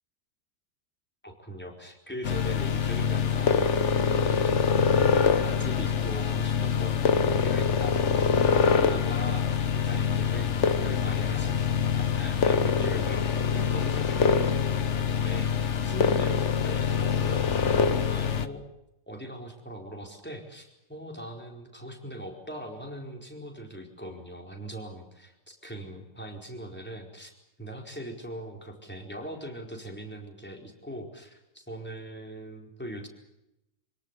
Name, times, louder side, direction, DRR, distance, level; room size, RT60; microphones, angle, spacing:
voice 1, 1.2-10.5 10.8-18.6 19.1-27.3 27.6-33.1, equal, 5° left, 2 dB, 4.5 m, -41 dB
sound 1, 2.2-18.5, left 6 dB, 50° left, 1.3 m, -25 dB
27.0 x 18.0 x 8.4 m, 0.89 s
omnidirectional pair, 1.7 m